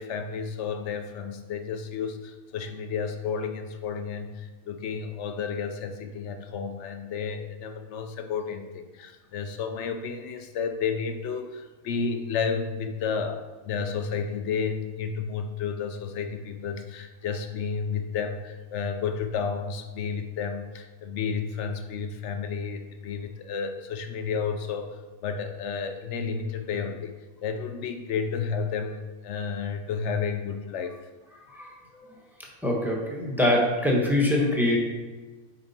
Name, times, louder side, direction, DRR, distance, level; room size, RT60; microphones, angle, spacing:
voice 1, 0.0-27.1 27.4-31.0, left 6 dB, 60° left, 7 dB, 0.8 m, -31 dB
voice 2, 31.5-32.1 32.6-34.8, left 1 dB, ahead, -1 dB, 1.1 m, -24 dB
7.2 x 4.8 x 4.3 m, 1.2 s
omnidirectional pair, 1.6 m